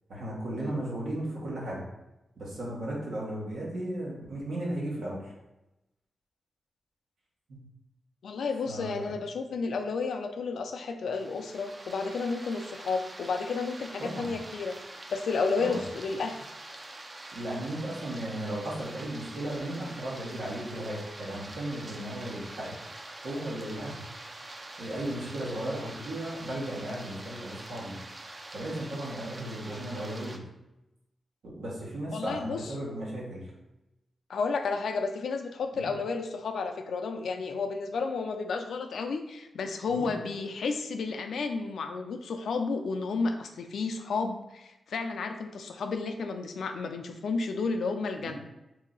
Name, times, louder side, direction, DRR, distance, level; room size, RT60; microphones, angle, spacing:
voice 1, 0.1-1.8 2.4-5.3 7.5-7.6 8.6-9.1 14.0-14.3 15.6-15.8 17.3-22.7 23.2-24.0 24.8-27.9 28.5-30.4 31.5-33.5 35.8-35.9 39.9-40.1 48.2-48.3, right 1 dB, 90° right, -5 dB, 1.3 m, -35 dB
voice 2, 8.2-14.8 15.1-16.5 32.1-32.7 34.3-48.3, left 4 dB, 85° left, 6 dB, 0.4 m, -32 dB
sound 1, 11.1-30.4, right 2 dB, 30° right, 0.4 m, -45 dB
3.1 x 2.7 x 3.8 m, 0.95 s
wide cardioid pair, 105°, 0 cm